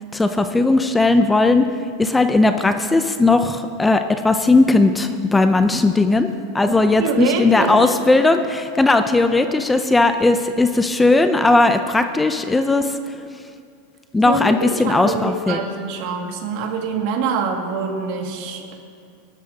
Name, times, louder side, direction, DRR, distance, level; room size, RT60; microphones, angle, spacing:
voice 1, 0.1-1.7 2.0-6.3 6.5-13.0 14.1-15.6, left 2 dB, 10° left, 8 dB, 0.5 m, -17 dB
voice 2, 6.7-7.9 14.2-18.7, right 5 dB, 55° right, 1 dB, 2.1 m, -25 dB
22.5 x 12.5 x 2.8 m, 2.3 s
supercardioid pair, 150°, 0 cm